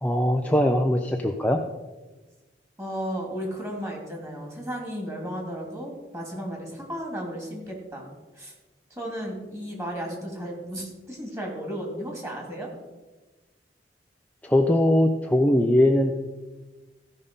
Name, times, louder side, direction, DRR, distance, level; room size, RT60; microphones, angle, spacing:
voice 1, 0.0-1.6 14.4-16.1, left 1 dB, 10° left, 2 dB, 0.5 m, -21 dB
voice 2, 2.8-8.0 8.4-8.5 8.9-12.7, equal, 15° right, 0 dB, 2.6 m, -34 dB
15.5 x 5.5 x 5.2 m, 1.2 s
head